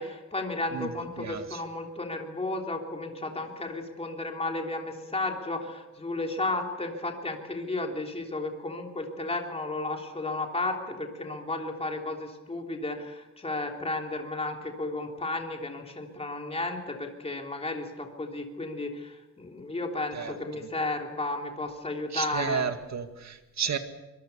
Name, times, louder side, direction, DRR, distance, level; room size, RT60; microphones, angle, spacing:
voice 1, 0.0-22.7, left 2 dB, 20° left, 2 dB, 3.3 m, -33 dB
voice 2, 22.1-23.8, right 7 dB, 60° right, 7 dB, 2.1 m, -31 dB
25.0 x 22.5 x 6.9 m, 1.1 s
wide cardioid pair, 140°, 32 cm